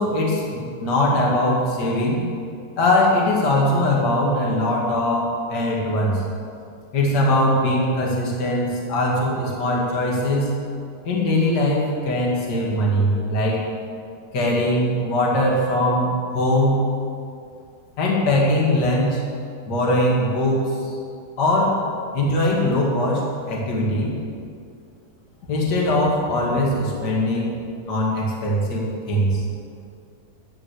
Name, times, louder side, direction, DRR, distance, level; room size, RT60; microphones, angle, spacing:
voice 1, 0.0-2.2 2.8-6.2 6.9-10.5 11.0-13.6 14.3-16.8 18.0-19.2 19.7-20.8 21.4-21.8 22.1-24.1 25.5-27.6 27.9-29.4, left 1 dB, 35° left, -3 dB, 2.1 m, -21 dB
14.0 x 5.2 x 8.3 m, 2.4 s
omnidirectional pair, 4.2 m